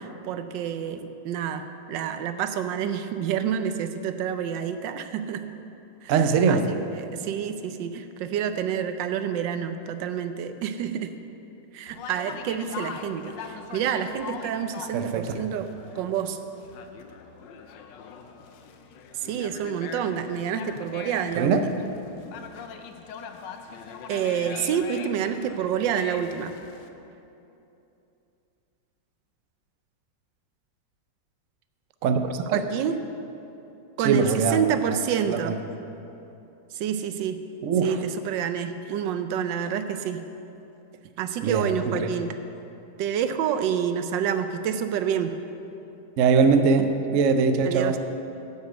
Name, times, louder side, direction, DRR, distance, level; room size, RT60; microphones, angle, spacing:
voice 1, 0.0-5.5 6.0-11.2 11.7-16.4 19.1-21.8 24.1-26.5 32.5-33.0 34.0-35.6 36.7-37.4 37.8-40.3 41.2-42.4 43.0-45.4 47.6-48.0, right 8 dB, 85° right, 9 dB, 1.3 m, -28 dB
voice 2, 6.1-6.6 14.9-15.4 21.4-21.7 32.0-32.6 34.0-34.6 35.3-35.5 37.6-38.0 41.4-42.1 46.2-48.0, right 5 dB, 60° right, 8 dB, 0.8 m, -22 dB
Conversation, 11.9-26.9, left 6 dB, 85° left, 1.4 m, -42 dB
10.0 x 6.8 x 8.0 m, 2.9 s
omnidirectional pair, 1.9 m